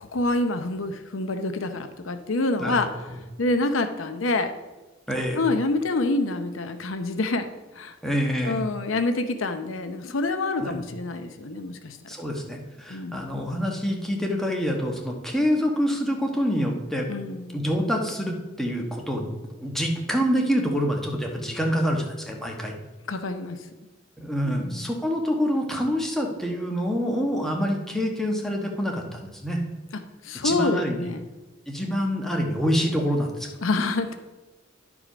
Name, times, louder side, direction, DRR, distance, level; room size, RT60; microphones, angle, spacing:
voice 1, 0.0-2.9 3.4-4.5 5.4-7.5 7.8-7.9 8.4-12.0 12.9-13.3 17.1-17.6 23.1-23.6 24.4-24.9 30.2-31.2 33.6-34.2, left 2 dB, 90° left, 8 dB, 0.7 m, -27 dB
voice 2, 2.6-3.2 5.1-5.4 8.0-8.6 10.6-10.8 12.1-17.1 17.5-22.7 24.2-29.6 30.4-31.0 31.7-33.5, equal, ahead, 0 dB, 1.2 m, -26 dB
11.0 x 4.9 x 5.0 m, 1.1 s
head